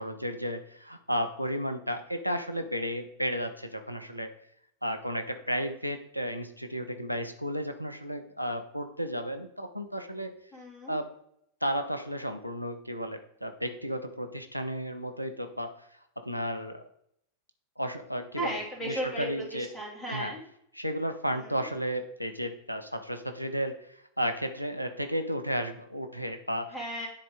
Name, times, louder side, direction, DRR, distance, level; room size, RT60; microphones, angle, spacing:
voice 1, 0.0-4.3 4.8-10.3 10.9-11.1 11.6-15.8 16.2-16.8 17.8-19.7 20.1-20.3 20.7-26.8, equal, 90° right, 6 dB, 0.6 m, -33 dB
voice 2, 10.5-10.9 18.4-20.4 26.7-27.1, right 1 dB, 10° left, -3 dB, 2.9 m, -35 dB
9.9 x 4.1 x 3.7 m, 0.71 s
figure-of-eight pair, 90°, 0 cm